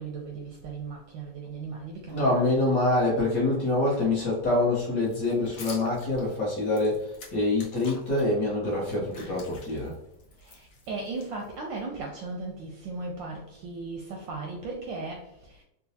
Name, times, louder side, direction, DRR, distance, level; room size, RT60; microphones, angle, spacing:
voice 1, 0.0-2.6 10.4-15.6, right 3 dB, 75° right, 1.1 m, -37 dB
voice 2, 2.1-9.9, left 2 dB, 55° left, 1.1 m, -25 dB
sound 1, 5.0-8.2 8.7-11.8, left 3 dB, 85° left, 1.8 m, -48 dB
3.9 x 2.2 x 2.7 m
omnidirectional pair, 2.4 m